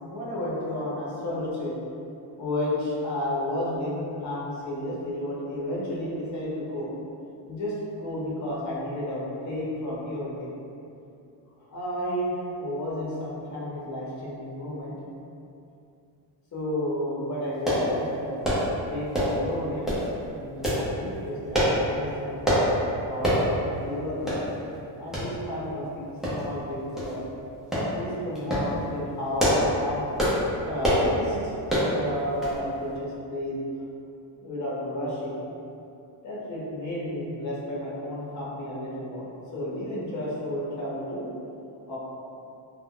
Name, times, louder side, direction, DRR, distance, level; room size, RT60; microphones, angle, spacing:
voice 1, 0.1-1.7 2.4-6.9 7.5-10.6 11.7-14.9 16.5-18.3 18.8-19.9 20.2-22.6 23.0-24.3 25.0-27.2 27.7-30.0 30.6-31.6 31.8-33.6 34.4-35.4 36.2-41.3 41.9-42.0, left 1 dB, 35° left, -6 dB, 0.8 m, -32 dB
sound 1, 17.7-17.9 18.4-18.7 19.1-19.4 19.8-20.1 20.6-20.8 21.5-21.8 22.4-22.7 23.2-23.4 23.8-23.9 24.3-24.4 25.1-25.3 26.2-26.6 27.0-27.1 27.7-27.9 28.3-28.7 29.2-29.7 30.2-30.4 30.8-31.1 31.7-31.9 32.4-32.6 32.9-33.0, equal, ahead, 0.5 m, -24 dB
2.3 x 2.1 x 3.6 m, 2.6 s
cardioid pair, 140°, 48 cm